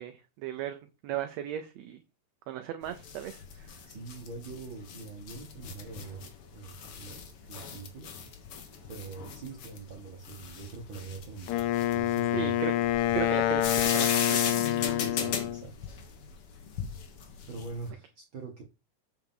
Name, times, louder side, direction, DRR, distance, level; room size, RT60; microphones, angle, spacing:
voice 1, 0.0-2.0 2.5-3.7 12.3-12.7 13.1-13.7 13.9-14.6, right 11 dB, 75° right, 1.6 m, -36 dB
sound 1, 2.8-17.9, left 6 dB, 55° left, 1.8 m, -37 dB
voice 2, 3.9-6.2 6.5-7.2 7.5-8.2 8.9-11.6 11.9-12.5 15.0-15.7 17.5-18.6, right 4 dB, 45° right, 1.8 m, -43 dB
Wind instrument woodwind instrument, 11.5-15.7, left 13 dB, 80° left, 2.1 m, -27 dB
8.2 x 5.6 x 3.7 m
omnidirectional pair, 3.7 m